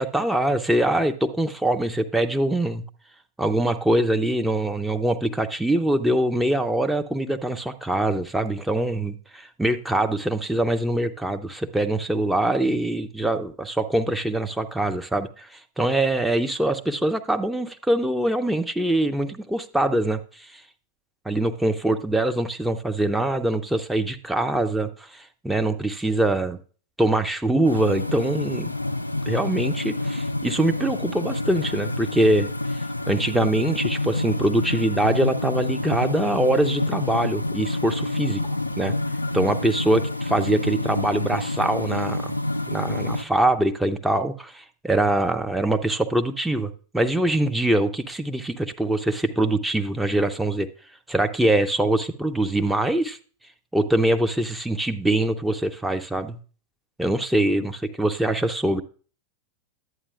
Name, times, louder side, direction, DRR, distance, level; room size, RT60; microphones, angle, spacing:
voice 1, 0.0-2.8 3.4-20.6 21.2-26.6 27.0-28.8 29.3-32.5 33.1-38.4 38.8-38.9 39.3-42.3 42.7-50.7 51.1-53.2 53.7-56.4 57.0-58.8, right 1 dB, 5° right, 6 dB, 0.6 m, -23 dB
sound 1, 27.6-43.2, left 2 dB, 85° left, 0.4 m, -28 dB
11.0 x 8.7 x 2.4 m, 0.39 s
figure-of-eight pair, 90°, 0 cm